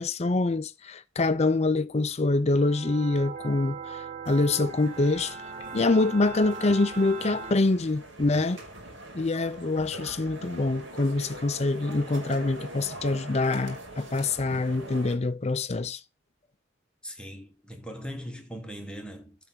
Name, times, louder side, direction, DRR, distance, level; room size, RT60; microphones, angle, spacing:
voice 1, 0.0-3.8 4.3-5.4 5.7-8.6 9.1-16.0, left 2 dB, 35° left, 0.5 m, -25 dB
sound 1, 2.5-7.5, right 5 dB, 35° right, 1.1 m, -39 dB
sound 2, 4.2-15.1, right 1 dB, 70° right, 2.2 m, -43 dB
voice 2, 17.0-19.4, equal, 5° left, 1.2 m, -40 dB
8.7 x 3.4 x 6.2 m
head